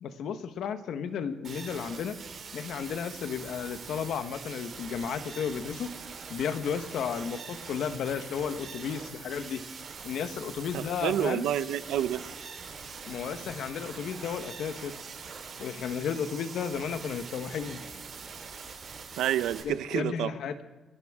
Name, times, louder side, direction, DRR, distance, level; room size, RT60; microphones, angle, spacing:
voice 1, 0.0-2.2 2.5-5.9 6.3-9.6 10.0-11.5 13.1-14.9 15.6-17.8 19.6-20.6, left 7 dB, 75° left, 10 dB, 1.1 m, -33 dB
sound 1, 1.4-19.6, right 5 dB, 50° right, 3.8 m, -43 dB
voice 2, 10.7-12.2 19.2-20.3, right 11 dB, 85° right, 15 dB, 0.7 m, -29 dB
28.5 x 12.5 x 3.6 m, 1.2 s
cardioid pair, 90°, 0 cm